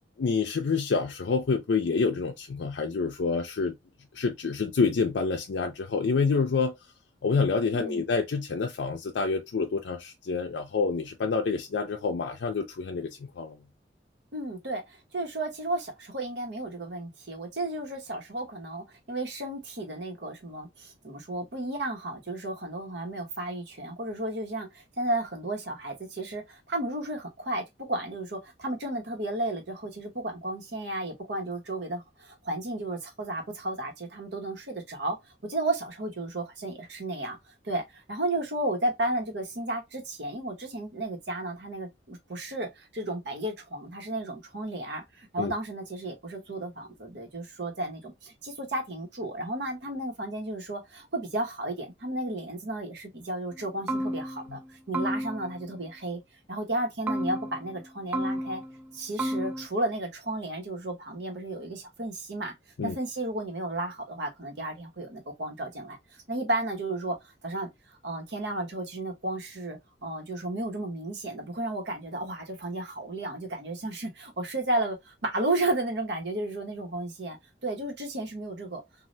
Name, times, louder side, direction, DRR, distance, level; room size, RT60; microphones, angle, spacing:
voice 1, 0.2-3.7 4.1-6.7 7.2-13.1 13.4-13.6 45.4-45.5 54.5-54.6 62.8-63.0, left 4 dB, 75° left, 0.5 m, -27 dB
voice 2, 7.7-8.0 14.3-35.2 35.4-37.4 37.6-56.2 56.5-58.6 58.9-62.5 62.8-66.0 66.3-67.2 67.4-67.7 68.0-77.4 77.6-78.8, right 2 dB, 70° right, 1.1 m, -33 dB
sound 1, 53.5-53.6 53.9-54.6 54.9-55.6 57.1-57.8 58.1-58.8 59.2-59.7, right 1 dB, 10° right, 0.4 m, -31 dB
3.2 x 2.4 x 2.6 m
head